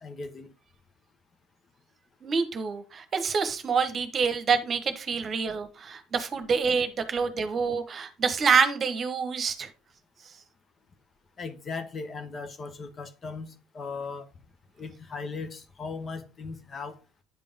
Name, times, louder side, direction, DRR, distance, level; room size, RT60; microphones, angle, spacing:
voice 1, 0.0-0.5 11.4-14.3 14.8-17.0, left 4 dB, 35° left, 1.1 m, -38 dB
voice 2, 2.2-9.7, right 5 dB, 35° right, 1.1 m, -27 dB
9.2 x 5.3 x 3.6 m
figure-of-eight pair, 60°, 0 cm